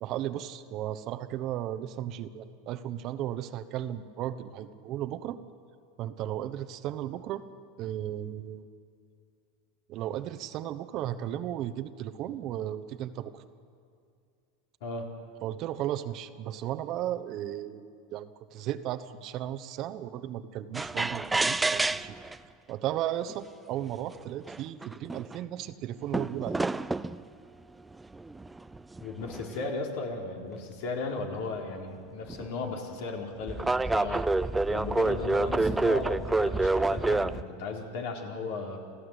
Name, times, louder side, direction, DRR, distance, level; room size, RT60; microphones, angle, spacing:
voice 1, 0.0-5.4 6.0-7.4 7.8-8.7 9.9-13.4 15.4-22.1 22.7-26.6, right 12 dB, 45° right, 12 dB, 1.1 m, -35 dB
sound 1, 20.7-22.3 23.3-23.4 24.1-24.2 24.5-25.4 26.1-27.2 28.1-29.7 32.3-32.5 33.5-37.4, right 2 dB, 10° right, 0.5 m, -28 dB
voice 2, 29.0-34.3 34.7-38.8, left 3 dB, 70° left, 1 dB, 3.9 m, -36 dB
29.0 x 15.0 x 8.2 m, 2.3 s
supercardioid pair, 130°, 0 cm